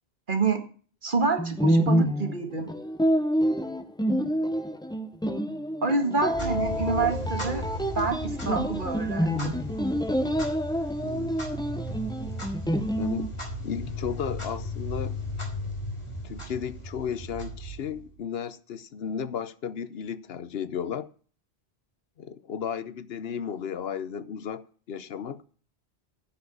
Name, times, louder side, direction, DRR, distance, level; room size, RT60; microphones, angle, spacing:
voice 1, 0.3-0.6 1.0-2.7 5.8-7.7 8.0-9.6, right 4 dB, 50° right, 1.9 m, -27 dB
sound 1, 1.4-13.3, equal, 5° left, 0.7 m, -27 dB
Clock, 6.2-18.2, equal, 30° left, 3.2 m, -36 dB
voice 2, 13.0-13.3 13.6-15.2 16.2-21.1 22.2-25.4, left 7 dB, 70° left, 1.0 m, -34 dB
10.0 x 6.3 x 8.4 m
omnidirectional pair, 1.1 m